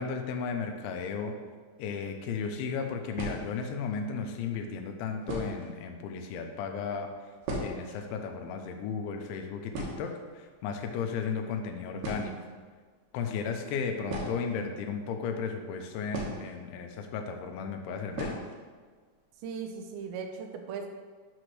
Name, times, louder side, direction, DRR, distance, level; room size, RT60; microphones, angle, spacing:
voice 1, 0.0-1.3 1.8-7.1 7.6-12.3 13.1-18.4, left 5 dB, 85° left, 4 dB, 3.0 m, -34 dB
sound 1, 2.2-2.3 3.1-3.8 4.7-4.8 5.2-5.8 6.1-6.2 6.4-6.6 6.9-8.0 8.3-8.4 8.7-9.0 9.3-9.4 9.7-10.6 11.6-11.7 12.0-12.6 14.0-15.1 16.1-16.9 17.2-17.3 18.1-18.6 18.9-19.0 19.4-19.5 19.9-20.3, right 1 dB, 70° right, 2.3 m, -37 dB
voice 2, 19.4-20.9, right 6 dB, 85° right, 4 dB, 2.7 m, -38 dB
8.8 x 3.2 x 6.0 m, 1.5 s
omnidirectional pair, 5.3 m